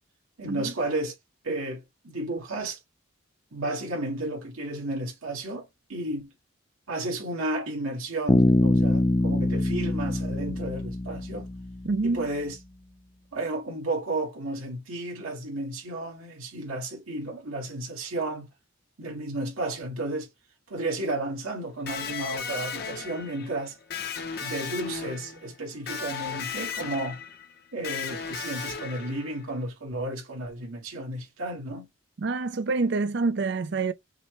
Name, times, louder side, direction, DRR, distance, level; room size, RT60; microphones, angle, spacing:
voice 1, 0.4-1.1 1.4-2.8 3.5-6.3 6.9-11.5 12.0-12.6 13.3-18.5 19.0-20.3 20.7-23.7 24.4-27.2 27.7-31.9, right 2 dB, 90° right, 1.8 m, -33 dB
Bass guitar, 8.3-12.0, left 1 dB, 20° left, 0.3 m, -24 dB
voice 2, 11.8-12.3 32.2-33.9, right 3 dB, 55° right, 0.4 m, -27 dB
Electric guitar, 21.9-29.6, left 6 dB, 50° left, 0.8 m, -36 dB
5.9 x 2.1 x 3.0 m
head